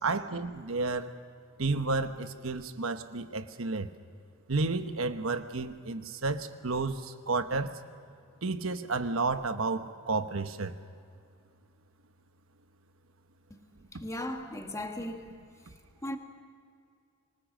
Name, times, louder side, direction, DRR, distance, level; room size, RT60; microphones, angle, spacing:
voice 1, 0.0-1.1 1.6-3.9 4.5-7.7 8.4-10.8, right 3 dB, 75° right, 9 dB, 1.1 m, -31 dB
voice 2, 13.9-15.3 16.0-16.2, left 1 dB, 15° left, 4 dB, 1.7 m, -36 dB
25.0 x 19.5 x 6.6 m, 2.3 s
head